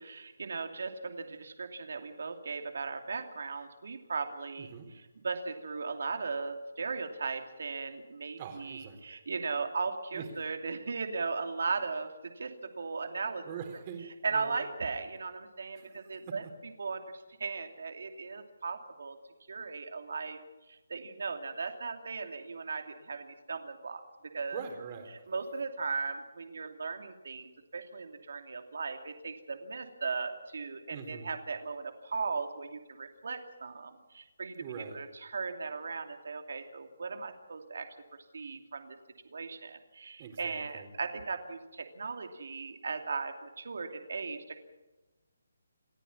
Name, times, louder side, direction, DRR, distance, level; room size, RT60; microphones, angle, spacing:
voice 1, 0.0-4.7 5.2-13.4 14.2-16.5 16.8-19.2 19.5-20.4 20.7-24.0 24.3-24.6 25.3-27.5 27.7-35.1 35.3-38.0 38.3-39.0 39.3-44.6, right 4 dB, 70° right, 5 dB, 2.8 m, -37 dB
voice 2, 8.4-9.1 10.1-10.3 13.4-14.7 15.7-16.4 24.5-25.3 30.9-31.3 34.6-35.0 40.2-40.9, right 7 dB, 30° right, 5 dB, 4.1 m, -44 dB
28.5 x 10.5 x 9.9 m, 1.1 s
hypercardioid pair, 160°, 0 cm